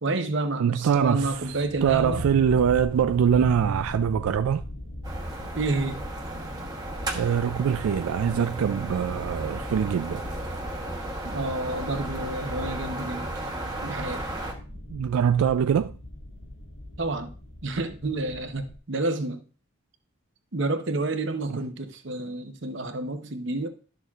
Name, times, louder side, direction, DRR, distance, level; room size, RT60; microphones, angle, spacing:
voice 1, 0.0-2.2 5.5-6.0 11.2-13.3 13.8-14.2 17.0-17.3 17.6-19.4 20.5-23.7, right 2 dB, 55° right, 0.9 m, -29 dB
voice 2, 0.6-1.4 1.8-4.6 7.1-10.2 14.9-15.9, right 8 dB, 85° right, 0.3 m, -23 dB
sound 1, 0.8-18.8, left 1 dB, 50° left, 1.8 m, -39 dB
sound 2, 5.0-14.5, right 1 dB, 20° right, 1.1 m, -35 dB
12.0 x 6.7 x 2.4 m
head